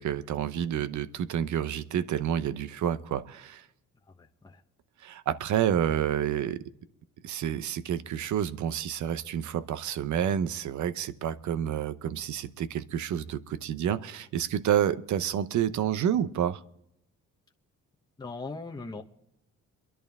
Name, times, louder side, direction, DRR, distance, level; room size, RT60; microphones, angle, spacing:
voice 1, 0.0-3.6 5.0-6.6 7.2-16.6, right 10 dB, 70° right, 0.9 m, -29 dB
voice 2, 4.2-4.6 18.2-19.0, left 3 dB, 15° left, 1.1 m, -39 dB
24.0 x 11.0 x 3.6 m
cardioid pair, 85°, 31 cm